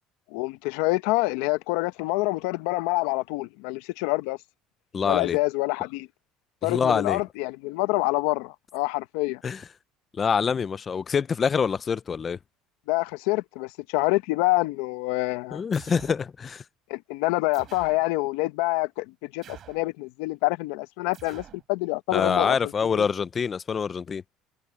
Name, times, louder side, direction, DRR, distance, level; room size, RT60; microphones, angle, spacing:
voice 1, 0.3-4.4 5.0-6.1 6.6-9.4 12.9-15.6 16.9-23.0, left 21 dB, 85° left, 0.8 m, -27 dB
voice 2, 4.9-5.4 6.6-7.2 9.4-9.6 10.2-12.4 15.5-16.6 22.1-24.2, left 6 dB, 25° left, 0.6 m, -25 dB
sound 1, 15.7-16.3 17.5-18.1 19.4-19.9 21.1-21.7, right 10 dB, 40° right, 4.6 m, -47 dB
cardioid pair, 135°, 0 cm